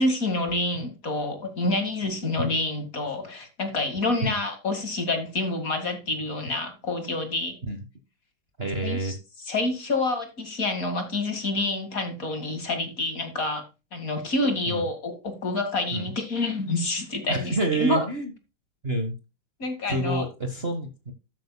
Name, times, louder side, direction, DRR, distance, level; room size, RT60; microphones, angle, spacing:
voice 1, 0.0-7.6 8.6-9.1 9.5-13.6 13.9-18.0 19.6-20.2, left 2 dB, 40° left, 7 dB, 2.4 m, -28 dB
voice 2, 8.6-9.2 14.7-14.8 15.9-16.1 17.3-18.3 18.8-19.1 19.9-21.1, right 2 dB, 30° right, 5 dB, 1.5 m, -28 dB
12.5 x 9.2 x 2.3 m, 0.27 s
omnidirectional pair, 2.4 m